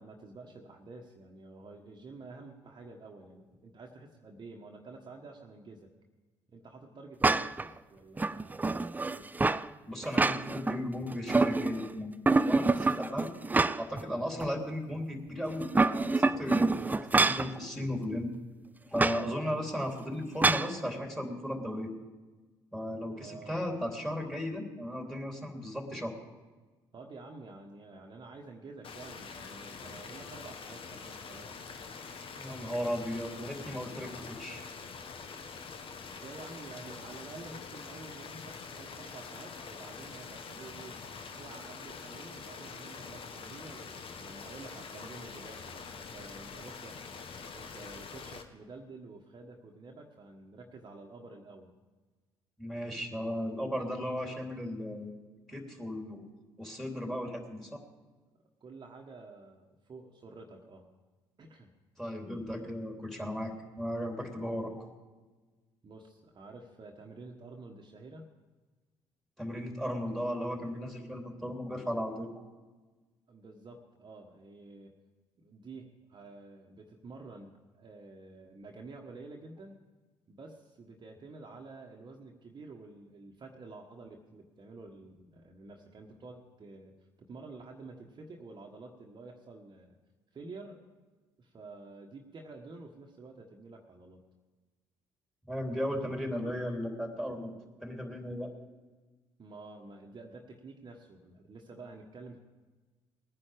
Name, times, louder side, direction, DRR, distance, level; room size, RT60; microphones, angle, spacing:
voice 1, 0.0-5.9 6.5-9.3 23.1-23.6 26.9-31.5 35.9-41.0 41.3-47.0 47.5-51.7 58.6-60.9 61.4-61.7 64.5-64.8 65.8-68.3 73.3-74.9 75.4-79.8 80.3-90.0 90.3-90.8 91.4-94.2 99.4-102.4, right 3 dB, 35° right, 1 dB, 1.4 m, -49 dB
sound 1, 7.2-7.7 8.2-9.7 10.0-10.8 11.1-11.9 12.3-14.0 14.4-14.5 15.5-17.5 19.0-19.2 20.4-20.7, right 3 dB, 15° right, 0.4 m, -26 dB
voice 2, 9.9-13.3 13.8-18.3 18.9-21.9 22.7-26.2 32.4-34.6 52.6-55.2 55.5-56.2 56.6-57.8 62.0-64.9 69.4-72.3 95.5-97.5 97.8-98.5, equal, ahead, 2 dB, 3.2 m, -36 dB
sound 2, 28.8-48.4, left 5 dB, 45° left, 1.4 m, -45 dB
20.0 x 10.0 x 5.0 m, 1.3 s
hypercardioid pair, 55°, 13 cm